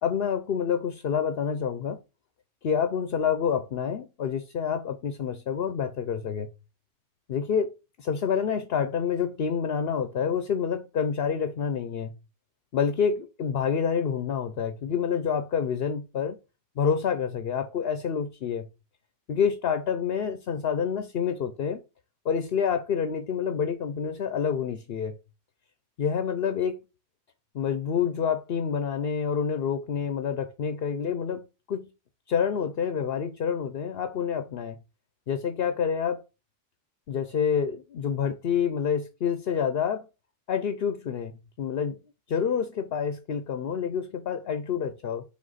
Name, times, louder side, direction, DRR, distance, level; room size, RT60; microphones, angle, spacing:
voice 1, 0.0-2.0 2.6-6.5 7.3-7.7 8.0-12.1 12.7-16.4 16.8-18.6 19.3-21.8 22.2-25.2 26.0-26.8 27.5-31.9 32.3-34.8 35.3-36.2 37.1-40.1 40.5-41.3 41.6-42.0 42.3-45.2, left 7 dB, 55° left, 0.8 m, -28 dB
5.3 x 3.4 x 5.6 m
omnidirectional pair, 1.3 m